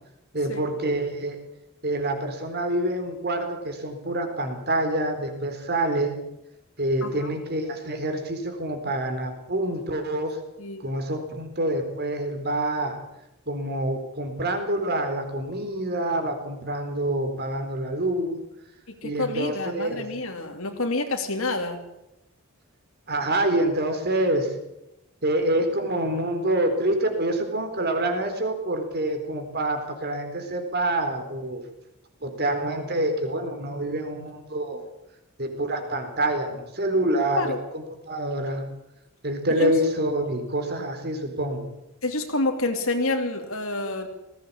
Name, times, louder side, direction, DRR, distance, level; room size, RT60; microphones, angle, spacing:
voice 1, 0.3-1.4 1.8-6.2 6.8-10.4 10.8-13.0 13.5-18.4 19.0-20.1 23.1-24.5 25.2-31.6 32.2-34.9 35.4-38.6 39.2-41.7, right 1 dB, 45° right, 6 dB, 4.1 m, -26 dB
voice 2, 18.9-21.8 37.3-37.6 39.6-39.7 42.0-44.1, left 2 dB, 65° left, 4 dB, 2.7 m, -28 dB
19.5 x 16.5 x 8.6 m, 0.91 s
head